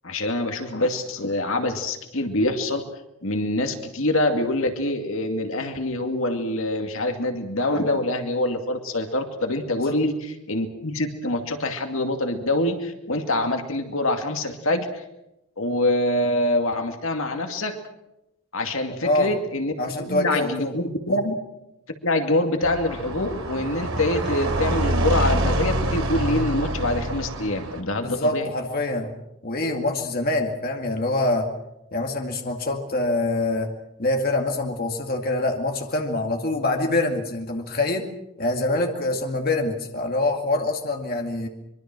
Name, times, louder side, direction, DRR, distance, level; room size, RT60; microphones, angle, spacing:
voice 1, 0.0-2.8 3.2-15.0 15.6-17.8 18.5-19.7 20.0-21.3 22.0-28.5, left 1 dB, 65° left, 5 dB, 2.4 m, -25 dB
voice 2, 18.9-19.3 19.8-20.7 21.1-21.2 28.0-29.1 29.4-31.5 31.9-33.7 34.0-38.1 38.4-41.5, left 2 dB, 40° left, 3 dB, 2.2 m, -25 dB
sound 1, 22.6-27.8, right 1 dB, 60° right, 3.5 m, -26 dB
24.5 x 23.0 x 6.2 m, 0.89 s
head